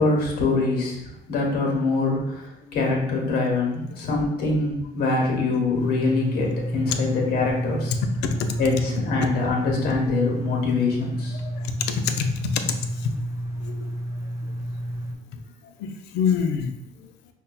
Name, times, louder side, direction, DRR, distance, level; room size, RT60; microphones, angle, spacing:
voice 1, 0.0-2.5 2.7-8.0 8.6-11.4, left 3 dB, 65° left, -1 dB, 1.1 m, -24 dB
sound 1, 5.7-15.1, equal, 20° right, 0.4 m, -30 dB
voice 2, 8.0-8.6 11.4-12.6 13.0-13.1 13.6-13.8 15.3-15.4 15.8-16.7, left 6 dB, 85° left, 7 dB, 0.4 m, -26 dB
5.3 x 2.2 x 2.2 m, 0.88 s
cardioid pair, 110°, 17 cm